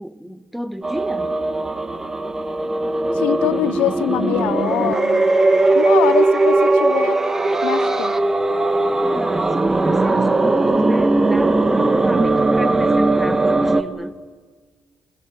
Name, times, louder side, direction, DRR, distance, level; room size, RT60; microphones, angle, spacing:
voice 1, 0.0-1.4 9.0-14.2, equal, 5° right, 1.7 m, -32 dB
sound 1, 0.8-13.8, right 2 dB, 20° right, 1.9 m, -18 dB
voice 2, 3.1-5.3 5.7-7.2 7.6-8.2, left 15 dB, 85° left, 1.1 m, -23 dB
27.0 x 22.0 x 8.8 m
supercardioid pair, 70°, 2 cm